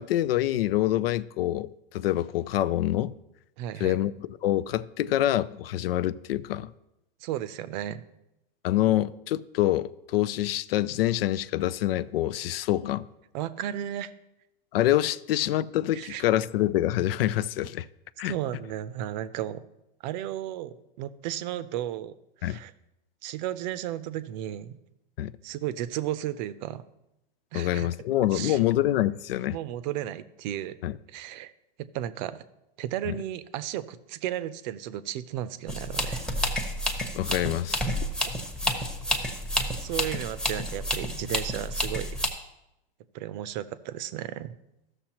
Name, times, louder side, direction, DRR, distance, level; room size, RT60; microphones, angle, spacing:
voice 1, 0.0-3.1 3.8-6.7 8.6-13.1 14.7-17.9 18.2-18.3 22.4-22.6 25.2-25.3 27.5-29.6 30.8-30.9 33.1-33.2 37.1-37.9, left 13 dB, 80° left, 0.5 m, -26 dB
voice 2, 3.6-4.0 7.2-8.0 13.3-14.1 15.9-16.2 18.2-19.7 20.0-22.1 22.4-22.7 23.2-24.8 25.4-26.9 27.5-27.9 28.3-28.6 29.5-30.8 31.1-31.5 31.8-32.4 32.8-36.2 39.8-42.2 43.1-44.5, right 12 dB, 50° right, 0.6 m, -34 dB
sound 1, 35.7-42.3, equal, 5° left, 0.9 m, -30 dB
14.5 x 6.5 x 2.9 m
supercardioid pair, 135°, 29 cm